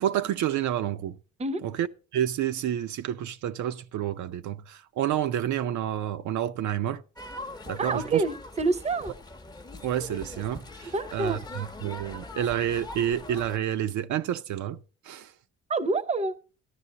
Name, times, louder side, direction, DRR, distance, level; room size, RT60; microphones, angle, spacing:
voice 1, 0.0-1.2 1.6-1.9 2.1-7.0 7.7-8.2 9.8-14.8 15.0-15.3, right 11 dB, 70° right, 0.5 m, -29 dB
sound 1, 7.2-13.6, left 2 dB, 15° left, 0.7 m, -42 dB
voice 2, 7.8-9.1 10.9-11.4 15.7-16.4, right 3 dB, 20° right, 0.6 m, -27 dB
13.0 x 11.0 x 2.8 m
cardioid pair, 90°, 30 cm